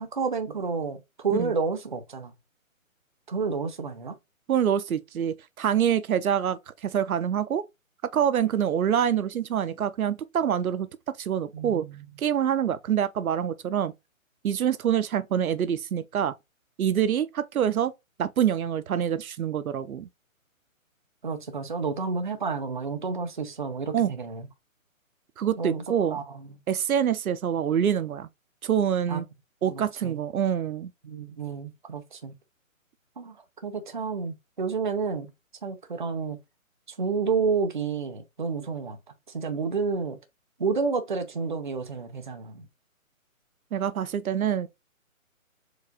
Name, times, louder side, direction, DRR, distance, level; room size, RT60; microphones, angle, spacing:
voice 1, 0.0-2.3 3.3-4.1 11.5-12.1 21.2-24.5 25.6-25.8 26.1-26.6 29.1-29.2 29.6-30.2 31.0-32.3 33.2-33.4 33.6-35.3 35.6-36.4 37.0-39.0 39.3-40.2 40.6-42.6, right 5 dB, 35° right, 0.6 m, -30 dB
voice 2, 4.5-7.6 8.1-10.9 11.2-11.9 12.2-13.9 14.4-16.3 16.8-17.9 18.2-20.1 23.9-24.1 25.4-26.2 26.7-28.3 28.6-29.3 29.6-30.9 43.7-44.7, right 9 dB, 85° right, 0.7 m, -26 dB
4.7 x 2.5 x 3.8 m
hypercardioid pair, 170°, 41 cm